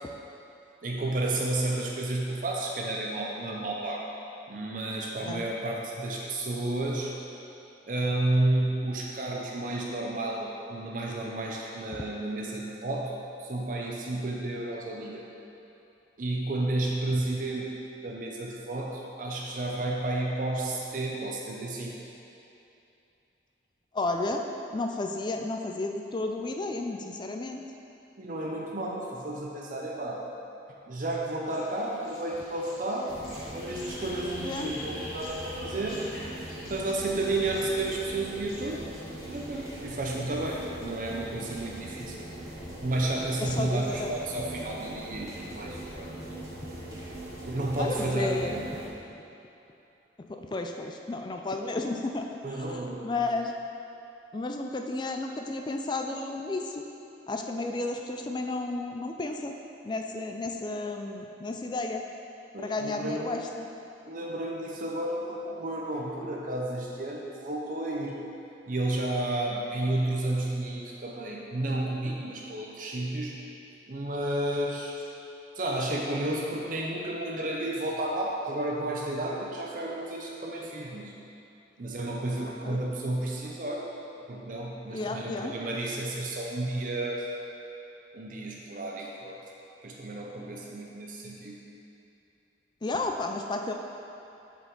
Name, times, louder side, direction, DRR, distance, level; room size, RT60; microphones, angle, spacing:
voice 1, 0.8-4.1 4.5-7.1 7.9-15.2 16.2-21.9 28.2-30.2 30.9-33.1 33.5-36.0 36.7-38.9 39.3-42.3 42.8-46.3 47.4-48.7 52.4-53.3 62.5-63.5 64.1-68.2 68.7-73.4 73.9-75.1 75.6-81.2 81.8-83.9 84.3-87.3 88.1-89.4 89.8-91.6, right 1 dB, 45° right, -1 dB, 0.6 m, -32 dB
voice 2, 23.9-24.4 24.7-27.6 34.4-34.7 43.4-44.2 47.8-48.6 50.3-52.4 52.7-53.5 54.3-56.8 57.3-59.5 59.8-62.0 62.6-63.7 82.6-82.8 84.9-85.5 92.8-93.7, left 2 dB, 25° left, 4 dB, 0.3 m, -32 dB
sound 1, 31.5-39.7, left 1 dB, 50° left, 1.3 m, -45 dB
sound 2, 33.1-45.9 46.2-48.1, equal, 15° right, 0.8 m, -54 dB
sound 3, 33.1-48.9, right 1 dB, 70° right, 1.6 m, -41 dB
7.9 x 4.8 x 3.9 m, 2.8 s
head